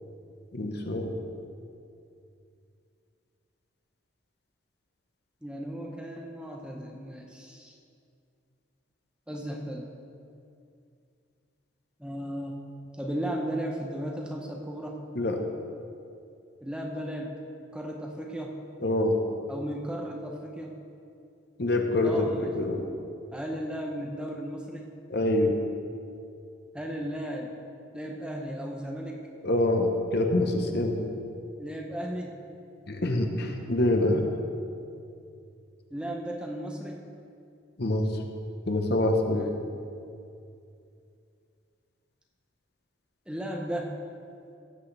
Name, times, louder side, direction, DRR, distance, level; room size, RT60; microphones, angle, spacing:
voice 1, 0.5-1.1 15.1-15.4 18.8-19.1 21.6-22.8 25.1-25.5 29.4-31.0 32.9-34.3 37.8-38.1 38.7-39.5, left 1 dB, 55° left, 3 dB, 1.0 m, -25 dB
voice 2, 5.4-7.8 9.3-9.9 12.0-12.6 13.0-15.1 16.6-17.4 17.7-18.6 19.5-20.8 22.0-22.5 23.3-25.0 26.7-27.5 27.9-29.2 31.6-32.4 35.9-37.0 39.3-39.5 43.3-44.0, right 1 dB, 5° right, 0 dB, 0.7 m, -35 dB
15.5 x 8.3 x 3.3 m, 2.5 s
head